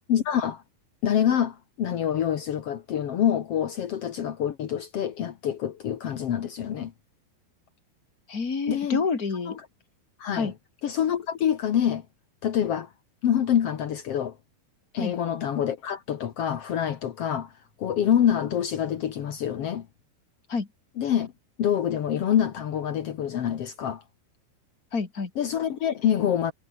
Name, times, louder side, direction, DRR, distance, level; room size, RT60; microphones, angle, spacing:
voice 1, 0.1-0.6 1.0-6.9 8.7-9.0 9.5-9.6 10.2-10.5 10.8-12.1 12.4-12.9 13.2-14.4 14.9-19.9 21.0-21.3 21.6-24.0 25.3-26.5, left 9 dB, 65° left, 1.5 m, -26 dB
voice 2, 8.3-9.6 10.3-10.5 15.0-15.1 20.5-20.7 24.9-25.3, left 4 dB, 25° left, 2.7 m, -28 dB
omnidirectional pair, 5.0 m